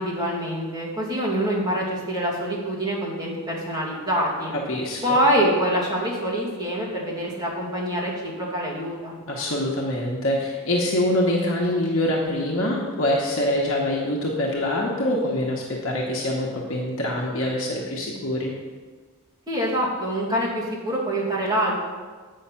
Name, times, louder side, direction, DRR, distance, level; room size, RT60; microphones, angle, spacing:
voice 1, 0.0-4.5 5.0-9.1 19.5-21.8, equal, 20° right, -7 dB, 2.3 m, -25 dB
voice 2, 4.5-5.2 9.3-18.5, left 1 dB, 65° left, -3 dB, 1.1 m, -25 dB
8.3 x 5.7 x 5.7 m, 1.4 s
head